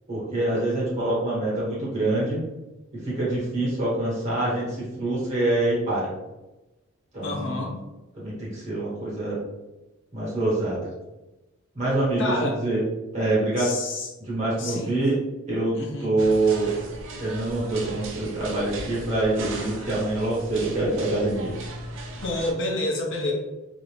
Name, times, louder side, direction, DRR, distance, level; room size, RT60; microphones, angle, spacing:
voice 1, 0.1-2.5 2.9-6.1 7.1-7.6 8.1-9.4 10.1-10.9 11.7-12.8 13.1-13.7 14.2-15.1 15.5-15.7 16.0-16.7 17.2-21.5, right 2 dB, 35° right, -7 dB, 1.0 m, -25 dB
voice 2, 7.2-7.8 12.2-12.6 13.5-14.1 14.6-15.0 15.7-16.1 22.2-23.3, left 2 dB, 65° left, -1 dB, 0.7 m, -29 dB
sound 1, 16.2-22.5, right 1 dB, 65° right, 0.5 m, -37 dB
2.5 x 2.1 x 3.0 m, 1.0 s
head